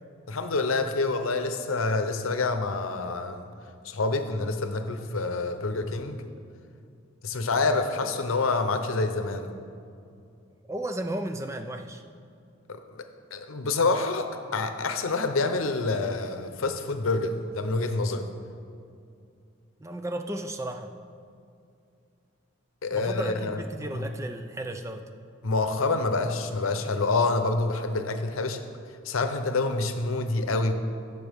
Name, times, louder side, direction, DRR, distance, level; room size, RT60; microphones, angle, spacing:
voice 1, 0.3-3.4 3.8-6.3 7.2-9.5 12.7-13.0 13.3-18.3 22.8-23.6 23.9-24.0 25.4-28.6 29.0-30.7, left 3 dB, 80° left, 8 dB, 0.7 m, -27 dB
voice 2, 10.7-12.0 19.8-20.9 22.9-25.1, right 1 dB, 15° right, 6 dB, 0.3 m, -34 dB
16.0 x 6.8 x 3.5 m, 2.4 s
head